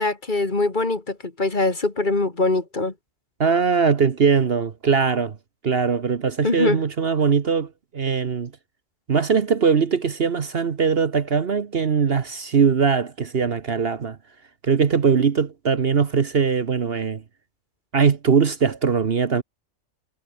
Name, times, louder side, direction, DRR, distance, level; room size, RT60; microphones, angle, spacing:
voice 1, 0.0-2.9 6.4-6.8, left 2 dB, 35° left, 2.2 m, -23 dB
voice 2, 3.4-5.4 5.6-8.5 9.1-14.2 14.6-17.2 17.9-19.4, right 6 dB, 50° right, 1.2 m, -21 dB
omnidirectional pair, 1.4 m